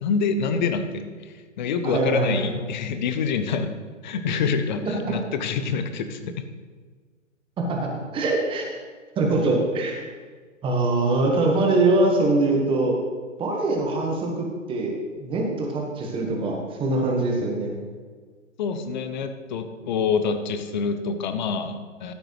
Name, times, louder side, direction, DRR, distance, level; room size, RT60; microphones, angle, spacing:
voice 1, 0.0-3.7 4.0-6.3 18.6-22.1, left 5 dB, 35° left, 8 dB, 1.0 m, -26 dB
voice 2, 1.8-2.6 7.7-8.8 9.1-10.1 10.6-12.9 13.4-17.8, right 2 dB, 15° right, 0 dB, 1.6 m, -23 dB
13.5 x 8.9 x 3.3 m, 1.5 s
figure-of-eight pair, 125°, 38 cm